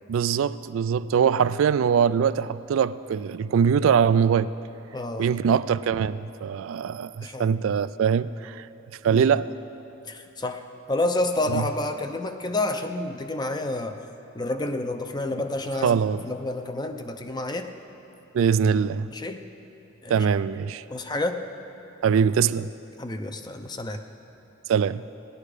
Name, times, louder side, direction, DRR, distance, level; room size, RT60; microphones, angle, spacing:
voice 1, 0.1-4.5 5.2-8.7 9.0-9.5 11.5-11.6 15.8-16.3 18.3-19.1 20.1-20.8 22.0-22.7 24.7-25.0, right 7 dB, 75° right, 15 dB, 0.3 m, -22 dB
voice 2, 4.9-5.3 7.2-7.5 9.0-9.3 10.1-10.6 10.9-14.0 14.3-17.7 19.1-19.4 20.0-20.2 20.9-21.4 23.0-24.0, left 2 dB, 20° left, 7 dB, 0.6 m, -29 dB
17.0 x 10.5 x 4.9 m, 2.9 s
head